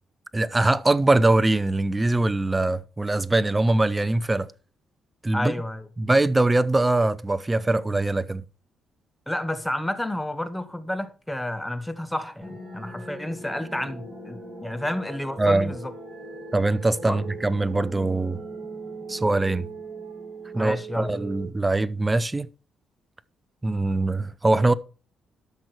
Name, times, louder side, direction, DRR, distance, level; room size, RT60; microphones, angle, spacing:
voice 1, 0.3-4.5 5.2-5.5 6.0-8.4 15.4-15.7 16.5-18.4 19.1-19.7 20.5-22.5 23.6-24.7, right 2 dB, 15° right, 0.6 m, -22 dB
voice 2, 5.3-5.9 9.3-15.9 17.1-17.2 20.5-21.1, left 1 dB, 5° left, 1.1 m, -30 dB
sound 1, 12.4-21.5, right 2 dB, 35° right, 7.0 m, -39 dB
12.5 x 6.2 x 4.6 m
cardioid pair, 90°, 0 cm